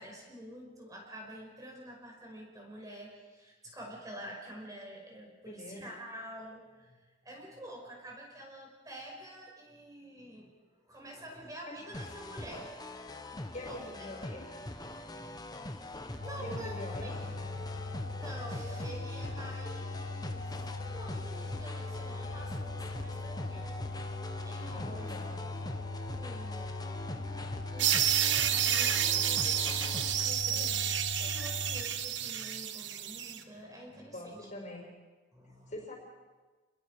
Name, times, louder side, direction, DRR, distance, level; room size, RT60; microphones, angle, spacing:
voice 1, 0.0-10.5 10.9-12.7 13.3-14.4 14.9-15.7 16.2-17.7 18.2-20.5 20.9-23.8 24.1-25.1 26.0-26.8 27.1-30.7 31.1-34.5 35.3-35.7, right 1 dB, 20° right, -1 dB, 5.6 m, -48 dB
voice 2, 5.5-5.9 13.5-14.6 16.4-17.2 24.7-25.4 30.4-30.9 34.1-34.9 35.7-35.9, left 1 dB, 45° left, 0 dB, 5.8 m, -44 dB
sound 1, 11.9-30.2, left 1 dB, 20° left, 1.2 m, -43 dB
sound 2, 16.2-31.8, left 2 dB, 80° left, 1.3 m, -40 dB
sound 3, 27.8-33.4, right 10 dB, 70° right, 1.2 m, -30 dB
29.0 x 21.0 x 5.0 m, 1.3 s
head